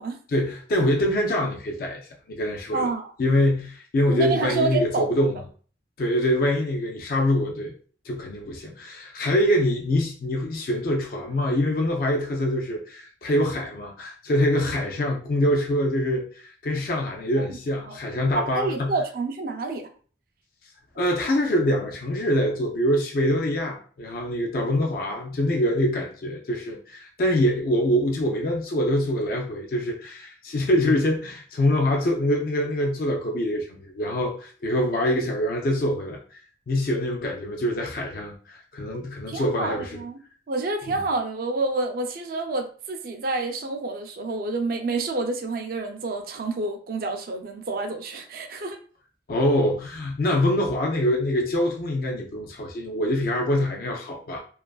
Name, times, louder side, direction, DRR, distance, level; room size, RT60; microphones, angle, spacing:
voice 1, 0.3-2.0 2.3-2.9 3.2-5.4 6.0-7.7 8.0-19.0 21.0-36.4 36.7-40.0 40.9-41.0 49.3-54.4, left 1 dB, 50° left, 0.4 m, -24 dB
voice 2, 2.7-3.1 4.1-5.1 17.9-18.0 18.3-19.9 39.3-40.2 40.5-48.8, right 3 dB, 50° right, 0.4 m, -28 dB
2.4 x 2.3 x 2.3 m
head